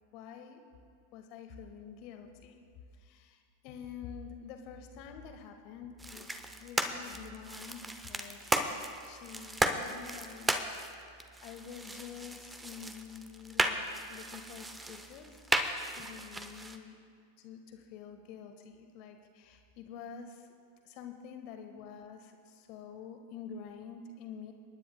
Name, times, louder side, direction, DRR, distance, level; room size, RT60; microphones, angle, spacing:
voice 1, 0.1-0.6 1.1-2.6 3.0-3.4 3.6-6.3 6.6-8.5 9.0-10.5 10.8-13.8 14.1-15.6 16.0-16.9 17.4-20.5 20.8-24.5, left 7 dB, 45° left, 5 dB, 1.1 m, -47 dB
sound 1, 6.0-16.8, right 2 dB, 10° right, 0.8 m, -35 dB
29.0 x 9.8 x 2.2 m, 2.2 s
figure-of-eight pair, 90°, 0 cm